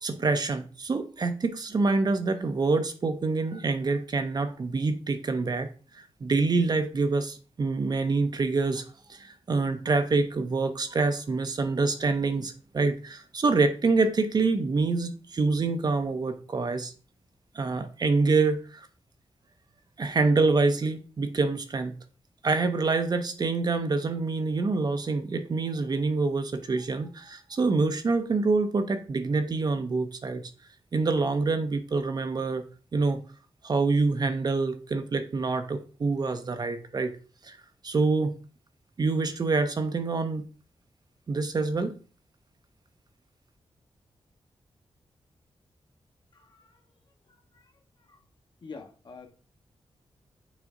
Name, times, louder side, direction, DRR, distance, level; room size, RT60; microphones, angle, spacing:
voice 1, 0.0-5.7 5.9-8.8 9.1-16.9 17.5-18.9 20.0-22.0 22.4-30.5 30.9-32.6 32.9-33.2 33.6-37.1 37.4-37.6 37.8-38.4 39.0-40.4 41.3-41.9, right 3 dB, 45° right, 8 dB, 0.7 m, -26 dB
voice 2, 48.6-49.3, left 4 dB, 50° left, 4 dB, 1.2 m, -43 dB
6.3 x 4.1 x 3.7 m, 0.37 s
wide cardioid pair, 135°, 10 cm